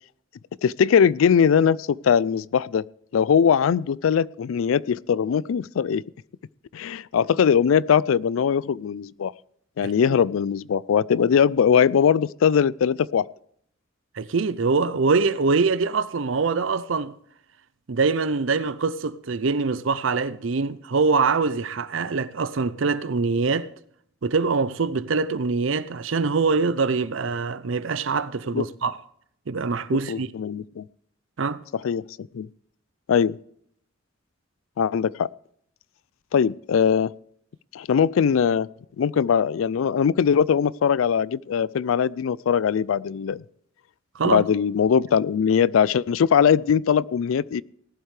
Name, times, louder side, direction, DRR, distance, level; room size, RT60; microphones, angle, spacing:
voice 1, 0.6-2.8 3.1-6.0 6.7-9.3 9.8-13.3 28.5-28.6 30.1-30.8 31.8-32.5 33.1-33.4 34.8-35.3 36.3-37.1 37.7-38.7 39.0-43.4 44.2-47.6, left 7 dB, 85° left, 0.4 m, -21 dB
voice 2, 14.2-17.1 17.9-23.7 24.2-29.0 29.5-30.3 31.4-31.6 44.1-44.4, right 4 dB, 70° right, 0.6 m, -24 dB
18.5 x 11.5 x 3.3 m
head